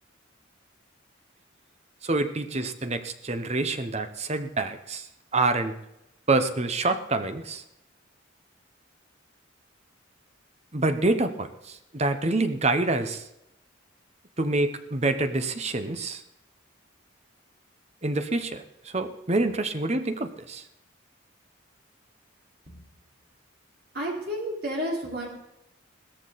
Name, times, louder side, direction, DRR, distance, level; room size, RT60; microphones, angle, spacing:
voice 1, 2.0-5.1 5.3-5.7 6.3-7.6 10.7-13.3 14.4-16.2 18.0-20.6, right 2 dB, 30° right, 9 dB, 0.9 m, -27 dB
voice 2, 23.9-25.3, equal, 50° right, -2 dB, 4.5 m, -31 dB
17.0 x 14.0 x 4.1 m, 0.86 s
head